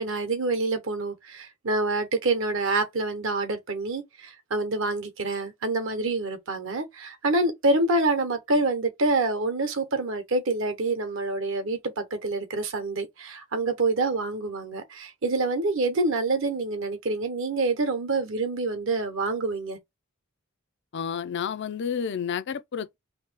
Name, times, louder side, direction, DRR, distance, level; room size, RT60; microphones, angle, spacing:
voice 1, 0.0-19.8, right 2 dB, 65° right, 0.9 m, -27 dB
voice 2, 20.9-23.0, left 7 dB, 55° left, 0.4 m, -30 dB
3.0 x 2.7 x 4.4 m
head